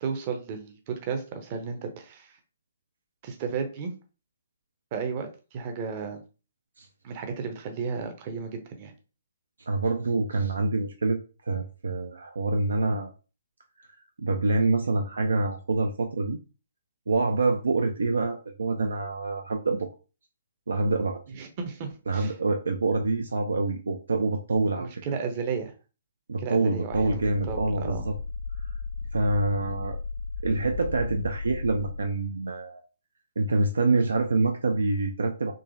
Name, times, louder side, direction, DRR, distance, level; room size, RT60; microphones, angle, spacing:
voice 1, 0.0-2.4 3.2-3.9 4.9-6.2 7.0-8.9 21.3-22.3 24.8-25.7 26.4-28.0, right 5 dB, 35° right, 6 dB, 0.7 m, -33 dB
voice 2, 9.7-13.1 14.2-16.4 17.1-19.9 20.7-21.2 22.1-24.9 26.3-28.2 29.1-30.0 30.4-32.8 33.4-35.5, right 3 dB, 65° right, 5 dB, 0.4 m, -26 dB
sound 1, 26.9-32.0, left 4 dB, 60° left, 0.4 m, -35 dB
3.8 x 2.8 x 2.6 m, 0.33 s
figure-of-eight pair, 125°, 0 cm